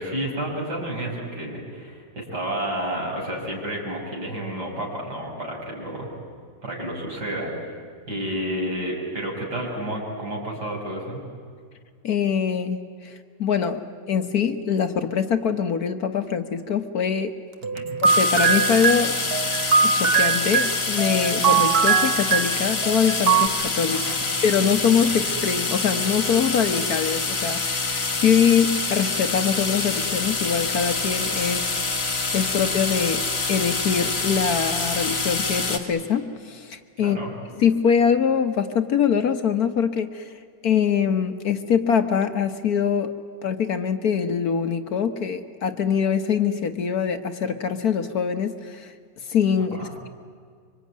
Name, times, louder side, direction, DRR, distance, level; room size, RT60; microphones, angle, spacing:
voice 1, 0.0-6.1 6.6-7.5 8.1-11.2 17.6-18.0 23.9-24.3 37.0-37.3 49.8-49.9, right 1 dB, 65° right, -2 dB, 6.4 m, -30 dB
voice 2, 12.0-17.3 18.2-19.2 19.8-24.0 24.4-31.8 32.0-33.2 33.5-37.2 37.6-40.3 40.6-43.1 43.4-48.9 49.3-50.1, left 7 dB, 60° left, 8 dB, 1.5 m, -23 dB
sound 1, 17.6-23.5, right 6 dB, 40° right, 1.0 m, -21 dB
sound 2, 18.0-35.8, left 3 dB, 35° left, 2.0 m, -26 dB
25.5 x 24.5 x 9.4 m, 2.1 s
omnidirectional pair, 1.9 m